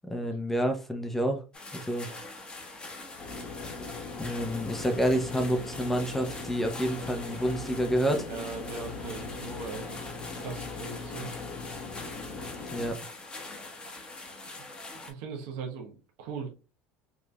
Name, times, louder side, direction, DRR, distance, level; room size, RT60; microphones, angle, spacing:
voice 1, 0.0-1.4 1.7-2.1 4.2-8.3 12.7-13.0, equal, 5° left, 0.7 m, -28 dB
sound 1, 1.5-15.1, left 2 dB, 20° left, 1.1 m, -43 dB
sound 2, 3.2-12.9, left 4 dB, 45° left, 1.1 m, -40 dB
voice 2, 8.3-10.0 10.3-11.3 14.5-14.6 15.0-16.5, right 5 dB, 75° right, 0.9 m, -39 dB
4.9 x 2.5 x 2.2 m
supercardioid pair, 115°, 5 cm